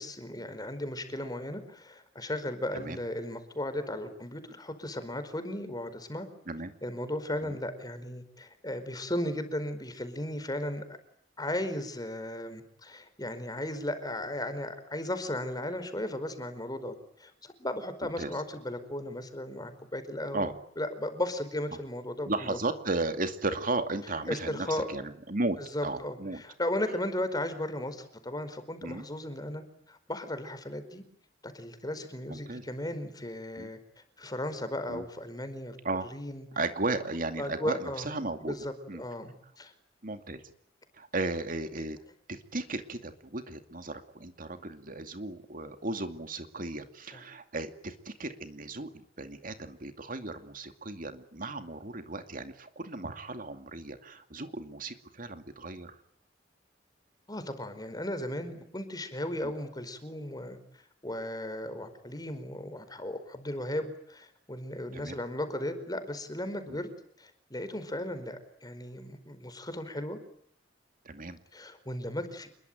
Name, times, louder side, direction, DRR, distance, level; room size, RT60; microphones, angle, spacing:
voice 1, 0.0-6.3 6.8-10.8 11.4-22.6 24.3-24.9 25.7-29.6 29.9-31.0 31.4-33.8 34.2-35.8 36.1-36.4 37.4-38.1 38.4-39.7 47.1-47.2 57.3-60.6 61.0-66.9 67.2-70.2 71.5-72.5, left 1 dB, 20° left, 10 dB, 4.8 m, -36 dB
voice 2, 22.3-26.4 28.8-29.1 32.3-32.6 33.6-33.7 34.9-35.0 35.8-36.1 36.6-38.5 38.9-39.0 40.0-40.4 41.0-42.0 42.3-55.9 59.4-59.5 64.9-65.2 66.7-66.8 71.0-71.4, right 2 dB, 50° right, 8 dB, 2.4 m, -35 dB
28.5 x 22.5 x 9.3 m, 0.67 s
head